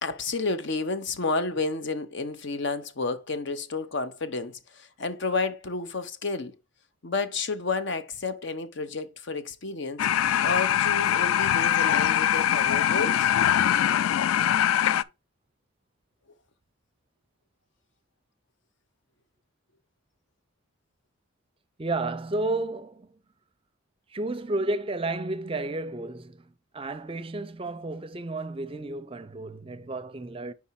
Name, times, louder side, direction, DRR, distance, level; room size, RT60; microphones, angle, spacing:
voice 1, 0.0-6.5 7.0-13.3, left 3 dB, 55° left, 0.7 m, -31 dB
sound 1, 10.0-15.0, left 10 dB, 80° left, 0.3 m, -23 dB
voice 2, 21.8-23.2 24.1-30.5, right 2 dB, 25° right, 0.5 m, -32 dB
4.8 x 4.2 x 5.6 m
head